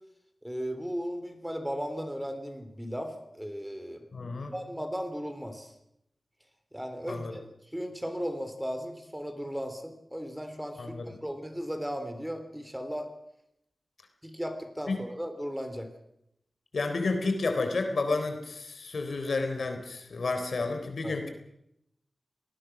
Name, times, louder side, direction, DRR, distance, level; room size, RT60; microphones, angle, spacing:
voice 1, 0.4-4.0 4.5-5.7 6.7-7.4 7.7-13.1 14.2-15.9 21.0-21.1, equal, 5° right, 7 dB, 3.6 m, -36 dB
voice 2, 4.1-4.5 7.1-7.3 10.8-11.1 14.9-15.0 16.7-21.3, left 3 dB, 80° left, 6 dB, 3.7 m, -31 dB
28.0 x 19.5 x 6.2 m, 0.80 s
wide cardioid pair, 90°, 0 cm